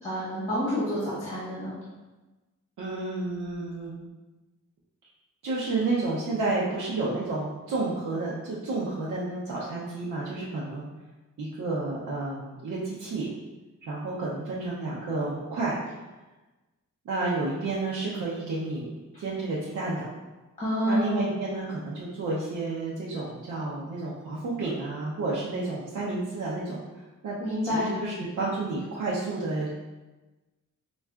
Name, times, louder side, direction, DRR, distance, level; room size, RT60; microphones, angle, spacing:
voice 1, 0.0-1.7 20.6-21.2 27.4-27.9, equal, 20° left, -9 dB, 1.1 m, -28 dB
voice 2, 2.8-4.1 5.4-10.8 11.4-13.3 13.8-15.7 17.0-18.9 19.2-20.1 20.9-26.8 27.2-27.4 27.7-29.8, right 3 dB, 70° right, -7 dB, 0.7 m, -31 dB
5.3 x 2.3 x 2.3 m, 1.1 s
wide cardioid pair, 130°, 31 cm